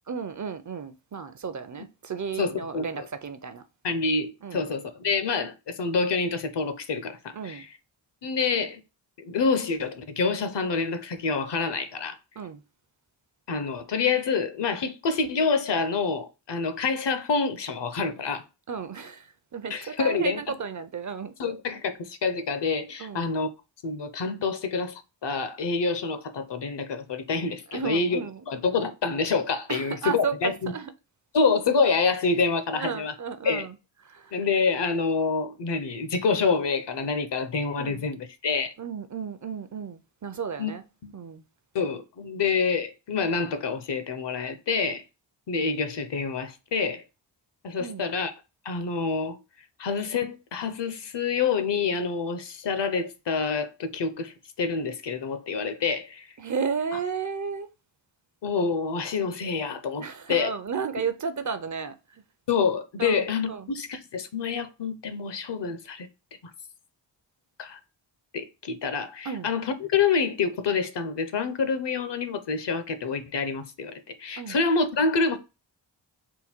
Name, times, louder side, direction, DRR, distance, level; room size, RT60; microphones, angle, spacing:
voice 1, 0.1-3.6 4.4-4.6 7.3-7.7 12.4-12.6 18.7-19.3 19.5-21.3 23.0-23.3 27.7-28.4 29.7-30.9 32.7-33.8 34.1-34.3 37.8-38.1 38.8-40.8 41.1-41.4 47.8-48.1 56.4-57.7 60.0-62.0 63.0-63.7 69.2-69.5 74.4-74.6, right 6 dB, 40° right, 0.5 m, -33 dB
voice 2, 2.4-3.1 3.8-7.7 8.2-8.8 9.2-12.2 13.5-18.4 19.7-20.4 21.4-23.5 23.8-28.2 28.5-30.7 31.3-33.1 33.4-33.7 34.3-38.7 40.6-40.7 41.0-41.1 41.7-45.0 45.5-47.0 47.6-48.3 48.6-49.4 49.8-56.3 56.9-57.0 58.4-60.5 62.5-66.1 67.6-67.8 68.3-75.4, left 5 dB, 65° left, 0.8 m, -27 dB
3.8 x 2.2 x 4.3 m
cardioid pair, 65°, 46 cm